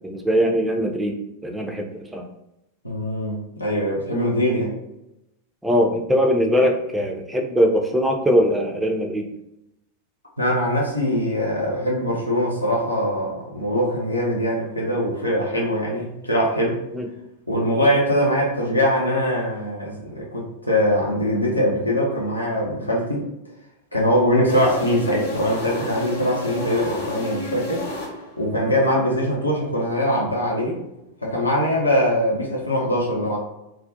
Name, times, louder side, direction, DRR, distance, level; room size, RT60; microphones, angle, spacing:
voice 1, 0.0-1.1 1.4-2.2 5.6-9.2 16.9-17.0, equal, 5° right, 2 dB, 0.3 m, -21 dB
voice 2, 2.8-4.7 10.4-16.8 17.5-23.2 23.9-27.8 28.4-30.8 31.2-33.4, equal, 85° left, -3 dB, 0.6 m, -22 dB
sound 1, 24.5-28.5, left 1 dB, 60° left, 0.9 m, -31 dB
2.4 x 2.1 x 2.5 m, 0.88 s
figure-of-eight pair, 90°, 0 cm